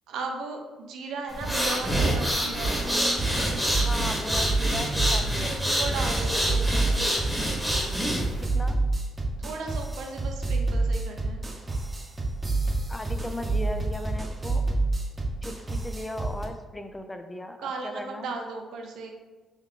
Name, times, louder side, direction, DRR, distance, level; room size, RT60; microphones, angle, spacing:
voice 1, 0.1-3.0 5.4-7.2 9.4-11.4 17.6-19.1, right 3 dB, 75° right, 3 dB, 0.6 m, -36 dB
sound 1, 1.3-8.4, equal, ahead, 1.3 m, -27 dB
sound 2, 2.6-16.5, right 2 dB, 30° right, 0.8 m, -28 dB
voice 2, 3.8-5.7 8.4-8.8 12.9-14.6 15.4-18.3, left 1 dB, 15° left, 7 dB, 0.4 m, -37 dB
3.9 x 3.1 x 3.2 m, 1.2 s
supercardioid pair, 60°, 0 cm